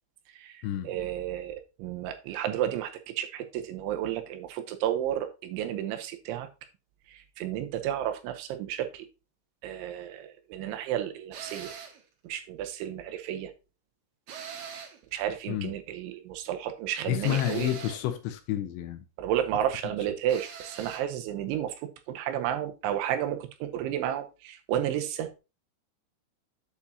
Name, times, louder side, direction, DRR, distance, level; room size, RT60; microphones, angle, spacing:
voice 1, 0.3-6.5 7.1-9.1 9.6-11.7 12.2-13.5 15.1-17.7 19.2-25.3, right 11 dB, 80° right, 3.2 m, -32 dB
sound 1, 11.3-12.0 14.3-15.1 17.2-18.1 20.3-21.1, right 7 dB, 65° right, 2.3 m, -42 dB
voice 2, 17.1-19.1, left 12 dB, 80° left, 2.9 m, -29 dB
8.4 x 7.0 x 2.8 m
omnidirectional pair, 5.5 m